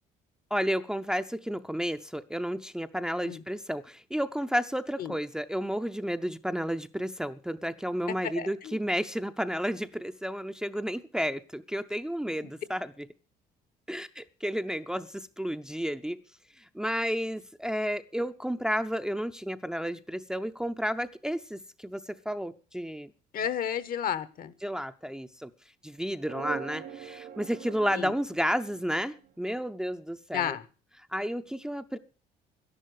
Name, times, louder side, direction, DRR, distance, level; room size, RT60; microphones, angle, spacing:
voice 1, 0.5-13.1 13.9-16.2 16.6-23.1 24.6-25.5 25.8-30.6 31.1-32.0, equal, 5° right, 8 dB, 0.6 m, -32 dB
voice 2, 8.2-8.8 23.3-24.5 27.9-28.1 30.3-30.6, left 9 dB, 60° left, 14 dB, 1.1 m, -32 dB
sound 1, 26.2-29.5, right 8 dB, 75° right, 2.2 m, -42 dB
12.0 x 11.0 x 6.4 m, 0.37 s
cardioid pair, 110°, 17 cm